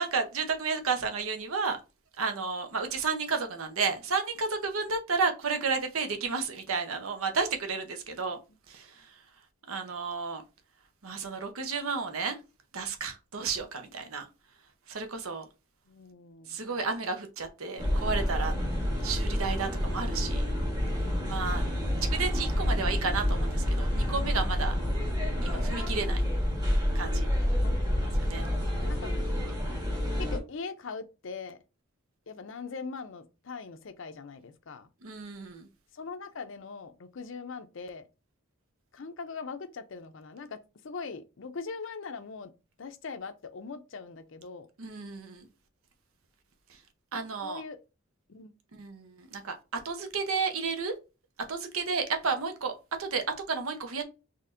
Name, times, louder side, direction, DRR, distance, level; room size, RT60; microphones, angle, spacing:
voice 1, 0.0-1.8 2.2-8.4 8.7-9.2 9.7-10.4 11.0-12.4 12.7-14.3 14.9-15.4 16.5-18.6 19.0-20.4 21.3-21.6 22.0-24.8 25.4-26.2 26.9-27.3 28.2-28.5 35.0-35.7 44.8-45.5 46.7-46.8 47.1-47.6 48.8-50.9 51.5-52.7 53.0-54.0, right 4 dB, 75° right, 0.8 m, -32 dB
voice 2, 15.9-16.7 24.1-24.5 27.6-28.2 28.6-29.1 30.2-31.6 32.3-34.9 35.9-38.1 38.9-42.5 42.8-44.7 47.4-47.8 48.3-48.5, left 4 dB, 60° left, 0.5 m, -41 dB
sound 1, 17.8-30.4, equal, 20° right, 1.1 m, -28 dB
4.2 x 3.1 x 2.5 m
head